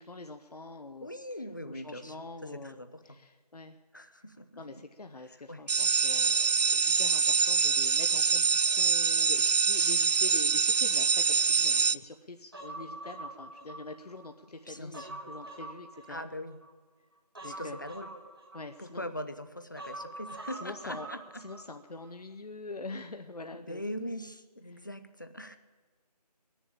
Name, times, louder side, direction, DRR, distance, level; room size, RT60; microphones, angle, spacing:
voice 1, 0.0-1.1 1.7-2.8 3.0-3.8 4.5-16.3 17.4-17.8 18.5-19.0 20.5-21.1 21.4-23.8 24.7-24.8, left 2 dB, 65° left, 6 dB, 0.8 m, -44 dB
voice 2, 1.0-2.1 2.4-3.2 3.9-4.8 5.5-5.6 14.7-15.2 16.1-16.6 17.4-18.1 18.8-21.2 23.5-25.6, left 1 dB, 30° left, 10 dB, 0.6 m, -41 dB
sound 1, 5.7-11.9, right 6 dB, 75° right, 0.4 m, -25 dB
Human voice, 12.5-14.3 14.7-16.7 17.4-19.1 19.8-21.7 22.0-22.1, right 2 dB, 35° right, 1.5 m, -45 dB
19.5 x 7.2 x 8.7 m, 1.4 s
figure-of-eight pair, 175°, 21 cm